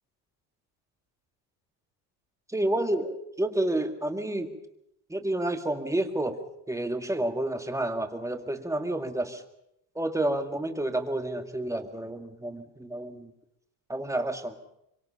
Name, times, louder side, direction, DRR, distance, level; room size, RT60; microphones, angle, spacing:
voice 1, 2.5-4.5 5.1-6.4 6.7-9.4 10.0-13.3 13.9-14.5, right 1 dB, 5° right, 6 dB, 2.1 m, -30 dB
25.0 x 24.0 x 5.7 m, 0.79 s
cardioid pair, 110°, 47 cm